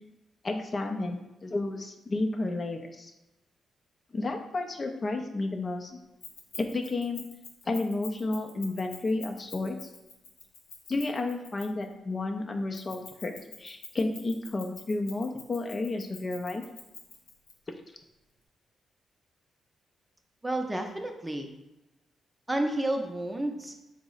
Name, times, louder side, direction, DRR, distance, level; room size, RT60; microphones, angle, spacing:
voice 1, 0.4-3.1 4.1-6.0 6.6-7.2 7.6-9.9 10.9-13.3 13.6-16.6, left 2 dB, 40° left, 4 dB, 0.4 m, -31 dB
Keys jangling, 6.2-11.9 12.7-17.5, left 5 dB, 90° left, 0.6 m, -46 dB
voice 2, 20.4-21.5 22.5-23.7, right 1 dB, 15° right, 4 dB, 0.5 m, -30 dB
3.9 x 2.0 x 3.8 m, 0.99 s
supercardioid pair, 55°, 0 cm